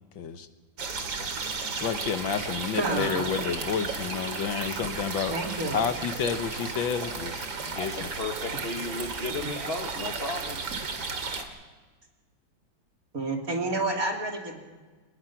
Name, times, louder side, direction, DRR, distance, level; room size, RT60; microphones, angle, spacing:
voice 1, 0.2-0.5 1.8-5.3 5.7-8.1, left 7 dB, 80° left, 9 dB, 1.9 m, -30 dB
sound 1, 0.8-11.4, right 4 dB, 85° right, 2.9 m, -34 dB
voice 2, 2.8-3.3 5.3-5.8 9.2-9.5 13.1-14.6, right 2 dB, 45° right, 1 dB, 3.3 m, -30 dB
voice 3, 7.7-10.7, left 2 dB, 35° left, 4 dB, 1.3 m, -34 dB
25.0 x 20.0 x 6.0 m, 1.3 s
omnidirectional pair, 2.1 m